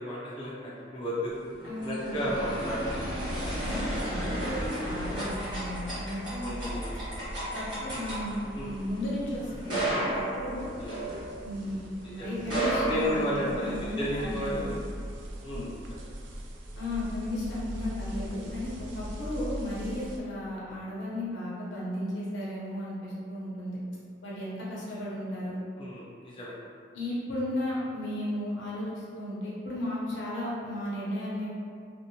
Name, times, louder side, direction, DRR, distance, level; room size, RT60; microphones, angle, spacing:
voice 1, 0.0-1.3 1.8-3.1 3.8-4.0 6.4-7.0 8.5-8.7 10.8-10.9 12.0-12.4 12.8-14.8 15.4-15.6 25.8-26.6, equal, 25° left, -9 dB, 0.4 m, -33 dB
sound 1, 1.4-11.8 12.3-13.9, right 1 dB, 25° right, 1.0 m, -33 dB
voice 2, 1.6-2.4 3.6-6.7 7.5-10.7 11.4-14.8 15.5-15.7 16.7-23.8 24.2-25.6 26.9-31.5, left 1 dB, 75° left, -7 dB, 0.7 m, -34 dB
sound 2, 2.9-20.2, equal, 75° right, 0.4 m, -41 dB
2.5 x 2.0 x 2.8 m, 2.3 s
head